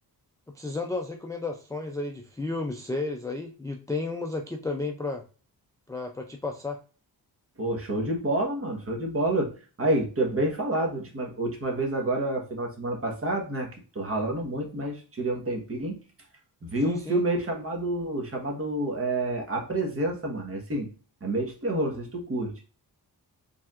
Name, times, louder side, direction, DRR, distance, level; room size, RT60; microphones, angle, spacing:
voice 1, 0.5-5.2 5.9-6.8 16.8-17.2, left 3 dB, 10° left, 2 dB, 0.3 m, -32 dB
voice 2, 7.6-9.5 9.8-13.7 13.9-16.0 16.7-20.9 21.2-22.5, right 1 dB, 35° right, 1 dB, 1.2 m, -28 dB
4.6 x 3.4 x 2.4 m, 0.37 s
wide cardioid pair, 125°, 40 cm